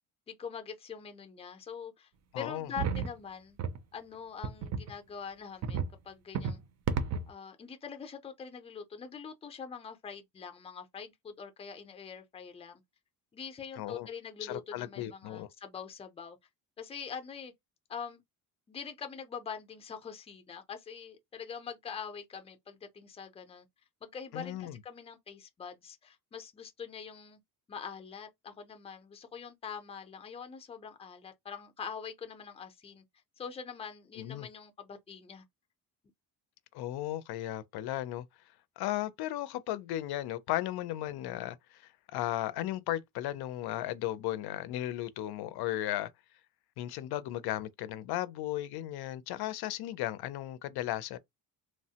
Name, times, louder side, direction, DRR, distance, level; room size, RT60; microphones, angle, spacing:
voice 1, 0.3-2.1 2.4-3.6 3.9-6.6 7.3-12.8 13.3-16.4 16.8-17.5 17.9-18.2 18.7-23.7 24.0-27.4 27.7-33.0 33.4-35.4, left 6 dB, 15° left, 0.5 m, -44 dB
voice 2, 2.3-2.7 13.8-14.1 14.4-15.5 24.3-24.8 34.2-34.5 36.7-38.2 38.8-46.1 46.8-51.2, left 14 dB, 75° left, 0.5 m, -35 dB
sound 1, 2.8-3.1 3.6-3.8 4.4-4.9 5.6-5.9 6.3-6.6 6.9-7.3, right 6 dB, 45° right, 0.5 m, -32 dB
3.1 x 2.0 x 2.8 m
cardioid pair, 140°, 38 cm